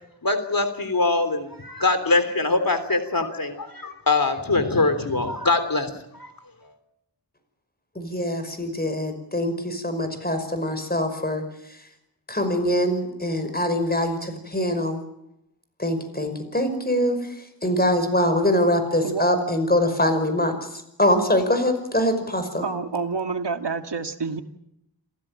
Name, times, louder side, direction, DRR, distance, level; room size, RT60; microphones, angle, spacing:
voice 1, 0.2-6.3, left 3 dB, 50° left, 10 dB, 3.4 m, -23 dB
voice 2, 8.0-11.4 12.3-15.0 15.8-17.2 17.6-20.5 21.0-22.6, left 1 dB, 20° left, 8 dB, 5.5 m, -23 dB
voice 3, 22.6-24.4, right 4 dB, 70° right, 7 dB, 2.0 m, -28 dB
28.0 x 16.0 x 8.9 m, 0.83 s
wide cardioid pair, 65°, 43 cm